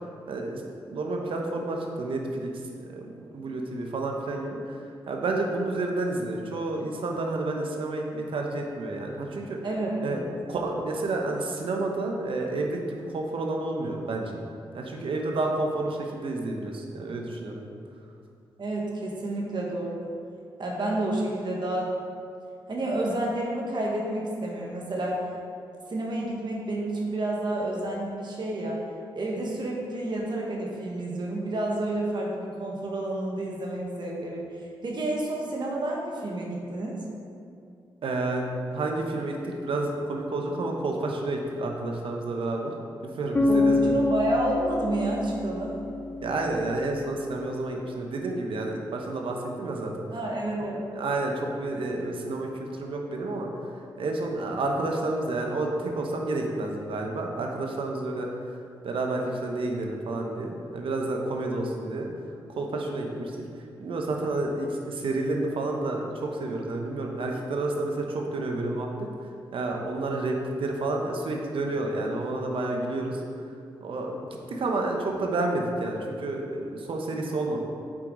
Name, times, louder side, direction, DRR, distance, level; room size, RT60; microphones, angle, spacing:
voice 1, 0.3-2.5 2.9-4.8 5.1-9.6 10.0-10.2 10.5-14.4 14.7-17.7 38.0-38.5 38.7-42.7 43.0-43.9 46.2-49.9 50.6-53.5 54.0-58.3 58.8-62.1 62.6-63.3 63.8-69.1 69.5-73.2 73.8-77.6, right 2 dB, 70° right, 1 dB, 1.0 m, -30 dB
voice 2, 9.6-10.3 18.6-20.1 20.6-21.9 22.7-25.3 25.9-28.8 29.1-37.0 43.5-45.7 50.1-50.8, right 1 dB, 55° right, -2 dB, 1.5 m, -30 dB
Bass guitar, 43.3-47.2, left 2 dB, 20° left, 0.6 m, -27 dB
7.6 x 4.6 x 3.9 m, 2.4 s
cardioid pair, 55°, 9 cm